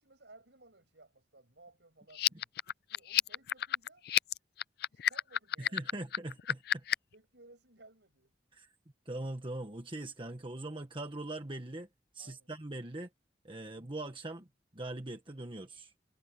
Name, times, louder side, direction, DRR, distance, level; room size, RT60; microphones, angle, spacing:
voice 1, 0.0-2.5 2.9-4.1 4.9-6.2 7.1-8.3 12.2-12.5, right 2 dB, 80° right, 6.9 m, -60 dB
sound 1, 2.1-7.1, left 12 dB, 60° left, 0.4 m, -31 dB
voice 2, 5.6-6.8 8.5-8.7 9.0-11.9 12.1-13.1 13.4-14.5 14.7-15.9, right 2 dB, 30° right, 1.4 m, -41 dB
head